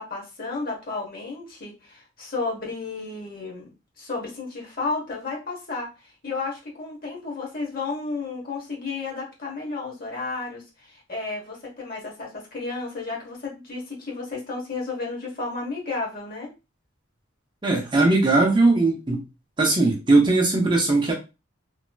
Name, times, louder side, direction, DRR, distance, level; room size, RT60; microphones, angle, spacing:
voice 1, 0.0-3.7 4.0-16.5, left 3 dB, 45° left, 1.2 m, -32 dB
voice 2, 17.6-19.2 19.6-21.1, right 2 dB, 25° right, 0.6 m, -19 dB
3.0 x 2.8 x 2.3 m
head